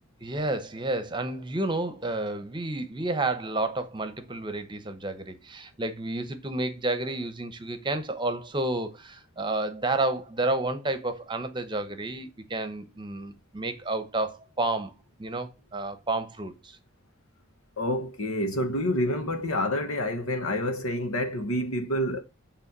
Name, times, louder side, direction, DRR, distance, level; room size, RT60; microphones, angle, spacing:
voice 1, 0.2-14.9 15.2-16.8, right 2 dB, 20° right, 0.9 m, -30 dB
voice 2, 17.8-22.2, left 1 dB, 80° left, 1.4 m, -28 dB
8.4 x 3.5 x 6.0 m
head